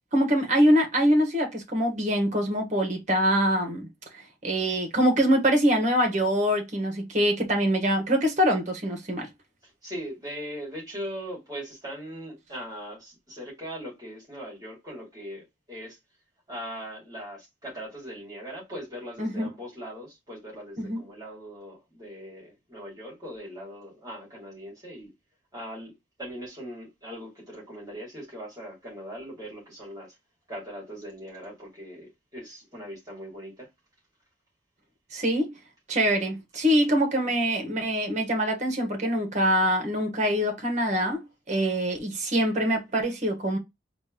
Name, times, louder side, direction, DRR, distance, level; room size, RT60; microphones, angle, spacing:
voice 1, 0.1-3.9 4.4-9.3 19.2-19.5 20.8-21.0 35.1-35.5 35.9-43.6, equal, 35° right, 1.2 m, -24 dB
voice 2, 9.8-16.0 16.5-25.1 25.5-25.9 26.2-30.1 30.5-33.7, equal, 20° right, 2.3 m, -40 dB
4.2 x 2.5 x 3.6 m
head